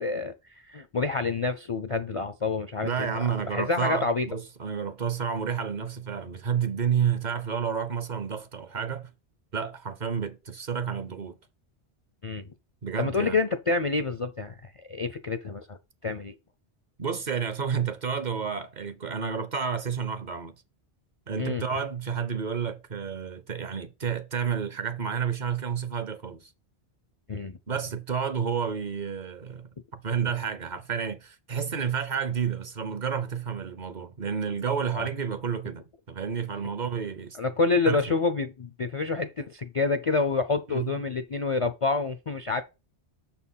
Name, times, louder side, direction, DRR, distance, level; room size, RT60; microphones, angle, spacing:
voice 1, 0.0-3.2 3.5-4.3 12.2-12.4 13.0-15.8 16.0-16.3 21.4-21.6 27.3-27.6 34.9-35.1 37.4-42.6, left 3 dB, 45° left, 0.4 m, -28 dB
voice 2, 2.8-9.1 9.5-11.4 12.8-13.4 17.0-20.5 21.3-26.5 27.7-29.7 30.0-37.4 37.9-38.0 40.7-40.9, right 7 dB, 50° right, 0.7 m, -30 dB
6.6 x 4.4 x 5.4 m
omnidirectional pair, 1.1 m